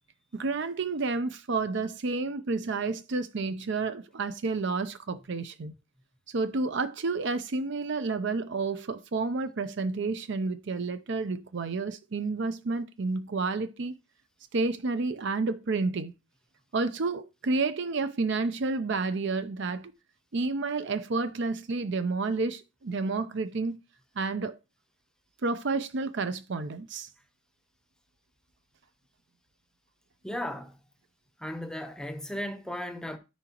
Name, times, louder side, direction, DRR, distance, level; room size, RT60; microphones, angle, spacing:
voice 1, 0.3-5.7 6.3-13.9 14.5-16.1 16.7-19.9 20.3-23.8 24.2-24.5 25.4-27.1, right 3 dB, 60° right, 0.5 m, -30 dB
voice 2, 30.2-30.8 31.4-33.2, left 1 dB, 5° left, 0.7 m, -35 dB
13.0 x 4.9 x 2.9 m
head